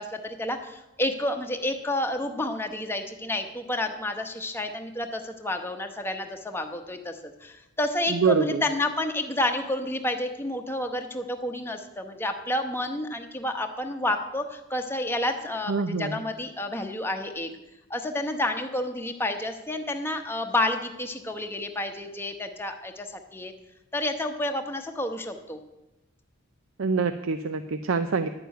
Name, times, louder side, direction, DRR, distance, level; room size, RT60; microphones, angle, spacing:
voice 1, 0.0-17.5 17.9-23.5 23.9-25.6, left 1 dB, 10° left, 5 dB, 0.9 m, -30 dB
voice 2, 8.1-8.6 15.7-16.2 26.8-28.3, right 5 dB, 70° right, 9 dB, 0.6 m, -25 dB
10.5 x 6.9 x 9.2 m, 0.98 s
head